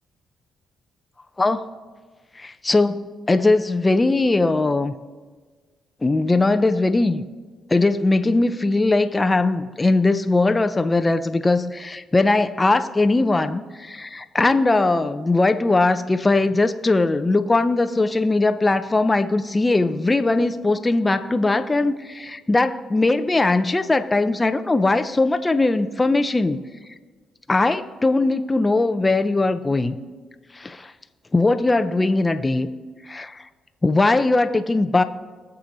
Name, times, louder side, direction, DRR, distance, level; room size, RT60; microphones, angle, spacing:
voice 1, 2.4-4.9 6.0-7.2 7.7-26.6 27.5-30.0 30.6-30.9 31.3-32.7 33.1-33.4 33.8-35.0, left 2 dB, 20° left, 9 dB, 0.6 m, -20 dB
20.0 x 7.0 x 4.0 m, 1.4 s
cardioid pair, 90°, 0 cm